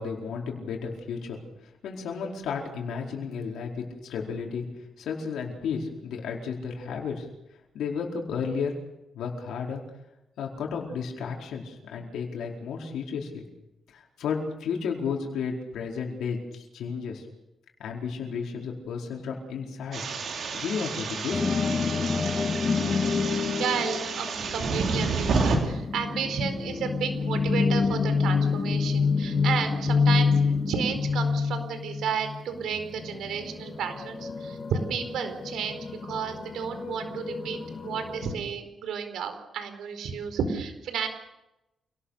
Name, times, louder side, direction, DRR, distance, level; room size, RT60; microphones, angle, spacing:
voice 1, 0.0-4.6 5.0-7.3 7.7-8.7 9.1-9.8 10.4-13.5 13.9-17.3 17.8-20.0 20.5-21.4, left 6 dB, 90° left, 0 dB, 4.7 m, -33 dB
sound 1, 19.9-25.6, right 4 dB, 60° right, 5.7 m, -30 dB
sound 2, 21.3-38.3, left 5 dB, 40° left, 2.6 m, -28 dB
voice 2, 23.4-30.3 30.7-41.1, right 7 dB, 90° right, 8 dB, 4.6 m, -32 dB
28.0 x 19.0 x 6.7 m, 0.90 s
cardioid pair, 125°, 0 cm